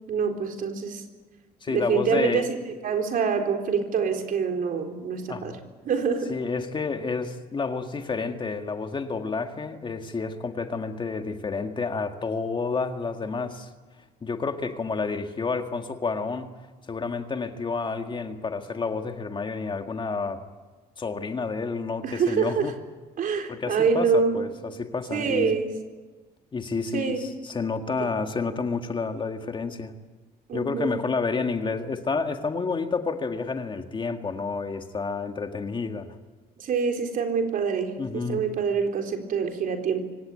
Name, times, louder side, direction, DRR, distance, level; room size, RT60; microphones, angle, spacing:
voice 1, 0.1-1.0 1.7-2.6 2.8-5.5 5.8-6.4 22.0-22.7 23.2-24.4 25.1-25.7 26.9-27.2 30.5-31.0 36.6-40.1, right 5 dB, 55° right, 4 dB, 4.1 m, -26 dB
voice 2, 1.6-2.5 5.3-5.6 6.3-13.7 14.2-16.5 16.9-20.4 21.0-22.7 23.5-25.6 26.5-29.9 30.5-36.1 38.0-38.4, left 4 dB, 30° left, 6 dB, 1.8 m, -30 dB
25.0 x 17.5 x 9.4 m, 1.3 s
cardioid pair, 110°, 17 cm